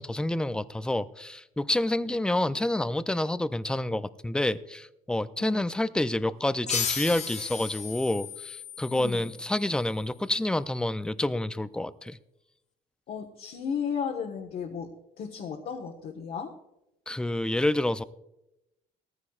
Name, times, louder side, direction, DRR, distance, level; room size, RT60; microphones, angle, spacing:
voice 1, 0.0-12.2 17.1-18.0, left 1 dB, 5° left, 0.4 m, -28 dB
voice 2, 2.0-2.6 5.4-5.7 8.9-9.3 13.1-14.9 15.2-16.5, left 6 dB, 60° left, 1.4 m, -35 dB
sound 1, 6.7-9.9, left 6 dB, 40° left, 1.3 m, -35 dB
18.5 x 14.5 x 2.4 m
cardioid pair, 110°, 17 cm